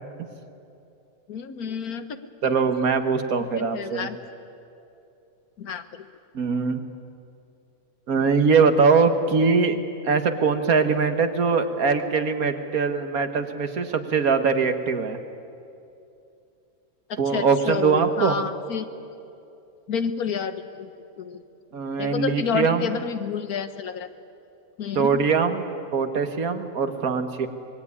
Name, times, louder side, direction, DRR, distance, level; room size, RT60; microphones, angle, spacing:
voice 1, 1.3-2.2 2.4-2.5 3.6-4.2 5.6-6.0 17.3-18.9 19.9-20.9 21.2-21.4 22.0-24.1 24.8-25.3, left 6 dB, 90° left, 10 dB, 1.7 m, -30 dB
voice 2, 2.4-4.1 6.3-6.9 8.1-9.8 10.0-15.2 17.2-18.4 21.7-22.9 25.0-25.6 25.9-27.5, right 5 dB, 75° right, 8 dB, 1.9 m, -22 dB
25.0 x 21.0 x 9.8 m, 2.6 s
omnidirectional pair, 1.5 m